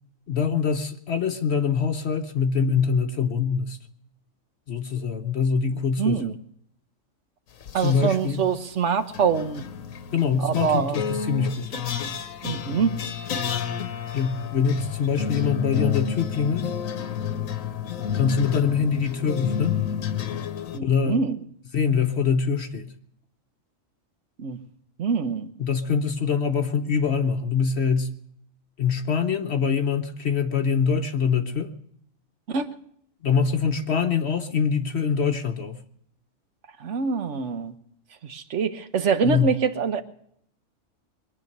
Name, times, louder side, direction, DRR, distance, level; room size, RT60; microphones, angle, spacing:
voice 1, 0.3-3.8 4.7-6.4 7.7-8.4 10.1-11.7 14.1-16.7 18.1-19.8 20.8-21.2 21.7-22.9 25.6-28.1 28.8-31.7 33.2-35.8 39.2-39.5, left 6 dB, 55° left, 6 dB, 1.0 m, -24 dB
voice 2, 6.0-6.3 7.7-9.7 10.4-11.0 12.4-13.0 20.7-21.3 24.4-24.6 25.0-25.5 32.5-32.7 36.8-37.7 38.2-40.0, right 6 dB, 60° right, 10 dB, 1.2 m, -25 dB
sound 1, 7.6-8.2 9.1-20.8, left 8 dB, 75° left, 1.3 m, -30 dB
22.5 x 9.6 x 6.6 m, 0.70 s
omnidirectional pair, 1.4 m